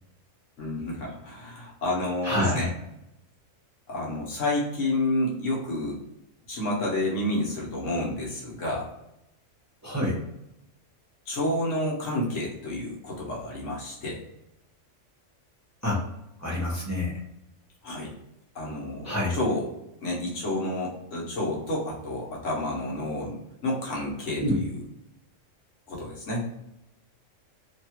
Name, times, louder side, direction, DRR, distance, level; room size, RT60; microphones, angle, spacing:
voice 1, 0.6-2.7 3.9-6.0 6.5-8.9 11.3-14.2 17.8-18.1 18.5-19.7 20.0-24.7 25.9-26.4, left 1 dB, 75° left, -3 dB, 1.3 m, -30 dB
voice 2, 2.2-2.7 9.8-10.2 15.8-16.0 16.4-17.2 19.0-19.4 24.4-24.6, left 1 dB, 15° right, -5 dB, 0.6 m, -27 dB
3.0 x 2.3 x 2.8 m, 0.85 s
omnidirectional pair, 1.3 m